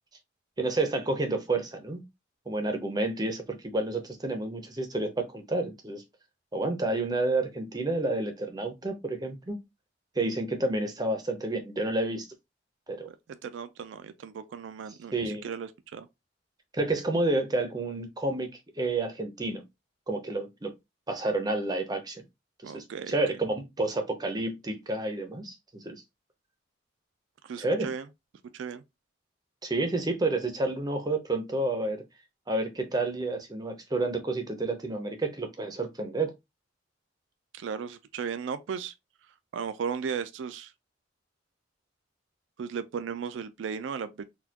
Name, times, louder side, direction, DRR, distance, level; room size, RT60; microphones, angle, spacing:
voice 1, 0.6-2.0 2.5-6.0 6.5-9.6 10.2-12.3 12.9-13.1 15.1-15.5 16.7-19.6 20.1-20.7 21.1-22.2 22.6-25.9 27.6-27.9 29.6-32.0 32.5-36.3, right 2 dB, 20° right, 0.6 m, -30 dB
voice 2, 13.1-16.1 22.6-23.2 27.4-28.1 28.5-28.8 37.5-38.9 39.5-40.7 42.6-44.2, right 6 dB, 75° right, 0.3 m, -36 dB
4.1 x 2.2 x 2.7 m
head